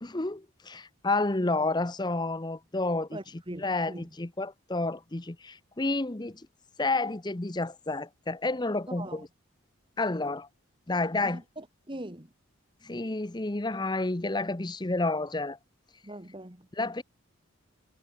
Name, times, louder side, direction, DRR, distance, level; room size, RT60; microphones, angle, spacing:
voice 1, 0.0-3.2 3.6-6.4 6.8-9.3 10.0-10.5 10.9-11.4 12.8-15.6 16.8-17.0, left 2 dB, 20° left, 0.7 m, -30 dB
voice 2, 3.1-4.1 8.9-9.3 11.2-12.3 16.0-16.7, right 1 dB, 25° right, 1.9 m, -42 dB
head